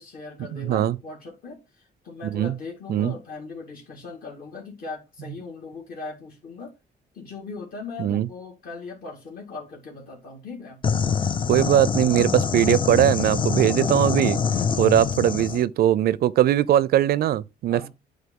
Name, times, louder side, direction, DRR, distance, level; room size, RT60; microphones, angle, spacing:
voice 1, 0.0-6.7 7.1-10.8 14.7-15.1 17.7-17.9, left 4 dB, 60° left, 2.1 m, -39 dB
voice 2, 0.5-1.0 2.3-2.5 2.9-3.1 8.0-8.3 11.5-14.4 14.8-17.9, right 12 dB, 65° right, 0.4 m, -20 dB
sound 1, 10.8-15.6, left 6 dB, 30° left, 0.4 m, -25 dB
7.8 x 2.7 x 5.3 m
cardioid pair, 110°, 17 cm